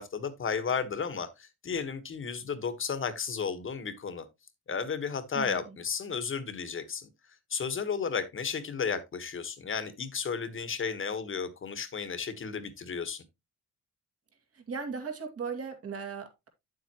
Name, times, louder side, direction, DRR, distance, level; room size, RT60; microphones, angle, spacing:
voice 1, 0.0-4.2 4.7-7.1 7.5-13.2, left 6 dB, 40° left, 1.4 m, -33 dB
voice 2, 14.5-16.5, right 5 dB, 50° right, 2.3 m, -37 dB
8.7 x 7.7 x 3.0 m
cardioid pair, 90°, 30 cm